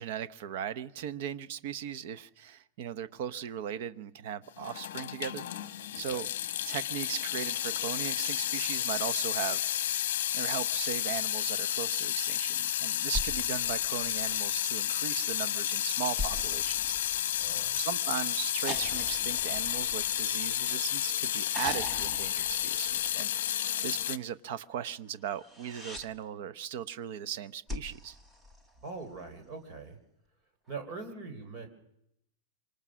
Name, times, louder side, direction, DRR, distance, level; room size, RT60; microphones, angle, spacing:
voice 1, 0.0-6.3 6.7-10.1 10.3-28.2, right 9 dB, 45° right, 15 dB, 0.9 m, -38 dB
Water tap faucet / Sink (filling or washing) / Drip, 4.6-24.2, left 11 dB, 70° left, 1.1 m, -31 dB
sound 1, 13.1-14.7 16.2-17.8 18.7-20.9 21.5-23.3 25.3-26.1 27.7-29.2 30.7-30.8, left 1 dB, 10° right, 1.1 m, -42 dB
voice 2, 17.4-17.8 28.8-30.0 30.7-31.7, right 4 dB, 30° right, 6 dB, 3.5 m, -42 dB
26.5 x 25.5 x 6.3 m, 0.79 s
supercardioid pair, 175°, 0 cm